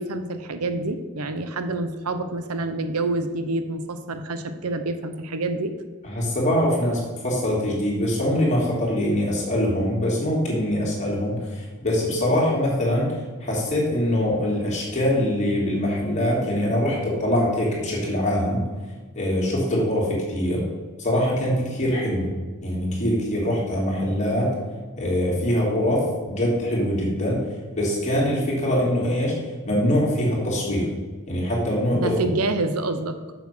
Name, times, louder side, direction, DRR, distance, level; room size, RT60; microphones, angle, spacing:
voice 1, 0.0-5.7 31.9-33.2, right 2 dB, 90° right, 9 dB, 0.8 m, -27 dB
voice 2, 6.0-13.1 13.4-18.6 19.1-20.6 21.0-22.3 22.6-24.5 25.0-27.4 27.8-29.3 29.7-30.9 31.3-32.2, left 1 dB, 35° left, -4 dB, 3.1 m, -23 dB
7.1 x 7.1 x 6.1 m, 1.4 s
head